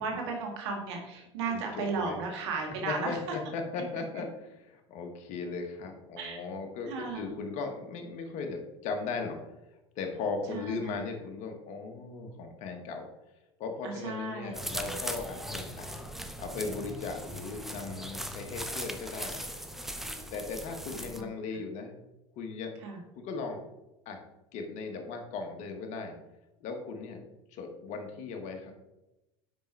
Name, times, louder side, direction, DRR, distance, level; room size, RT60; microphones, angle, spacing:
voice 1, 0.0-3.4 6.2-6.4 6.8-7.4 10.5-10.9 13.8-14.9 20.9-21.3 22.8-23.0, right 4 dB, 80° right, 2 dB, 1.7 m, -35 dB
voice 2, 2.8-9.4 9.9-13.1 13.6-15.9 16.4-19.6 20.3-21.9 22.4-22.7 23.2-23.6 24.0-24.2 24.5-26.2 26.6-27.2 27.5-28.7, left 4 dB, 55° left, 4 dB, 1.3 m, -37 dB
sound 1, 14.5-21.2, equal, ahead, 0.6 m, -39 dB
5.2 x 5.2 x 4.5 m, 0.97 s
hypercardioid pair, 90°, 14 cm